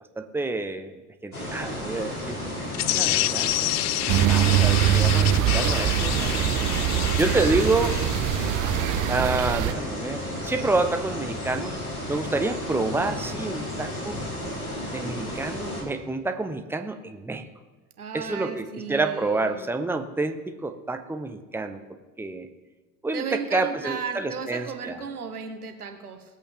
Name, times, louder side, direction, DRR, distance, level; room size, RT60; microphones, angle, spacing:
voice 1, 0.2-0.9 1.2-2.4 2.6-3.6 4.3-6.7 7.2-8.0 9.1-11.8 12.1-14.2 14.9-17.5 18.1-21.8 22.2-22.5 23.0-25.0, right 3 dB, 5° right, 8 dB, 0.9 m, -28 dB
sound 1, 1.3-15.8, left 1 dB, 90° left, 2.6 m, -33 dB
sound 2, 2.7-9.2, left 18 dB, 40° left, 0.4 m, -29 dB
voice 2, 4.0-4.4 12.0-12.1 18.0-19.7 23.1-26.2, right 6 dB, 85° right, 7 dB, 1.2 m, -35 dB
sound 3, 4.1-9.7, right 11 dB, 45° right, 0.8 m, -23 dB
19.5 x 8.3 x 3.7 m, 1.2 s
figure-of-eight pair, 65°, 43 cm